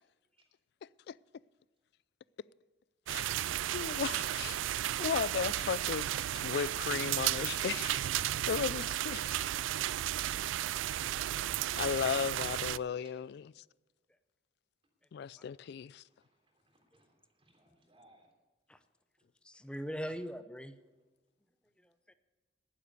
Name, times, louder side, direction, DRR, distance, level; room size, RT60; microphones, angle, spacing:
sound 1, 3.1-12.8, right 13 dB, 85° right, 0.3 m, -34 dB
voice 1, 3.7-4.6 5.0-8.0 8.5-9.3 11.7-13.4 15.1-16.0, left 7 dB, 60° left, 0.3 m, -35 dB
voice 2, 12.7-13.2 15.2-15.7 16.0-18.3 20.1-20.2, right 1 dB, 30° right, 3.3 m, -68 dB
voice 3, 19.4-20.8 21.8-22.1, equal, 5° left, 0.6 m, -41 dB
11.5 x 10.0 x 6.8 m
head